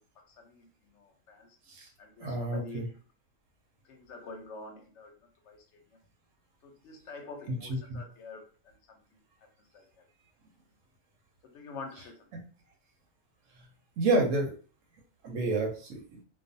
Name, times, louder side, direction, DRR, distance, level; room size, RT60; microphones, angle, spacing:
voice 1, 0.3-1.6 2.0-2.9 3.8-5.2 5.4-6.0 6.6-9.2 9.7-10.1 11.4-12.3, left 3 dB, 60° left, 2 dB, 0.9 m, -47 dB
voice 2, 2.2-2.8 7.7-8.0 12.3-12.4 14.0-14.5 15.2-16.0, right 2 dB, 65° right, 0 dB, 0.9 m, -29 dB
2.4 x 2.3 x 2.6 m, 0.39 s
omnidirectional pair, 1.6 m